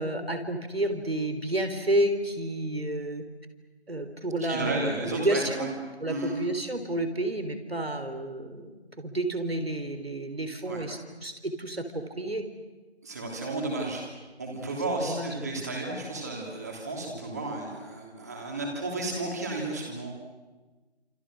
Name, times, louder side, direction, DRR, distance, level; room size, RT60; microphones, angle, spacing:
voice 1, 0.0-3.2 3.9-4.9 5.2-5.7 6.0-12.5 15.0-15.3, right 1 dB, 65° right, 8 dB, 3.9 m, -30 dB
voice 2, 4.4-5.7 6.1-6.4 10.7-10.8 13.0-14.1 14.4-20.1, right 2 dB, 15° right, 0 dB, 3.1 m, -33 dB
28.0 x 27.5 x 6.4 m, 1.3 s
figure-of-eight pair, 170°, 32 cm